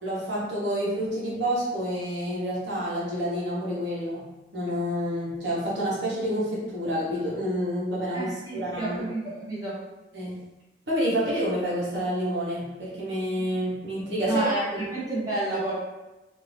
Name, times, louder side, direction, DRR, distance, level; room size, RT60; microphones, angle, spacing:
voice 1, 0.0-4.2 4.5-9.0 10.1-10.4 10.9-14.8, equal, 75° right, -7 dB, 1.2 m, -28 dB
voice 2, 8.1-9.8 14.3-15.7, right 2 dB, 20° right, -7 dB, 0.6 m, -30 dB
2.7 x 2.6 x 3.3 m, 1.0 s
head